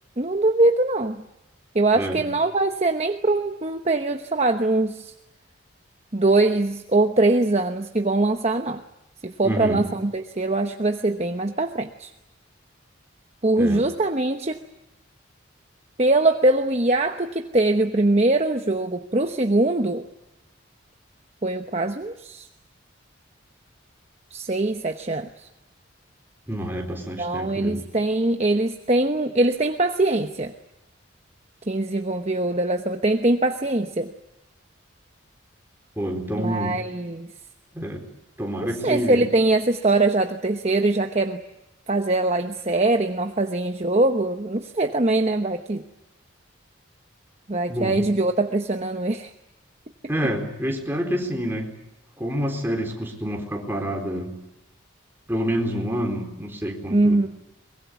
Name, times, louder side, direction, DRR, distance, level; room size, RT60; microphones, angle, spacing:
voice 1, 0.2-1.2 1.7-5.1 6.1-8.8 9.2-12.1 13.4-14.6 16.0-20.0 21.4-22.5 24.3-25.3 27.2-30.5 31.7-34.1 36.3-37.3 38.8-41.4 41.9-45.8 47.5-49.3 56.9-57.3, right 2 dB, 35° right, 6 dB, 1.0 m, -22 dB
voice 2, 1.9-2.3 9.4-9.9 13.6-13.9 26.5-27.9 36.0-36.8 37.7-38.1 38.4-39.3 47.7-48.1 50.1-51.7 52.2-54.4 55.3-57.3, equal, 10° right, 1 dB, 4.1 m, -28 dB
23.5 x 21.5 x 9.3 m, 0.93 s
head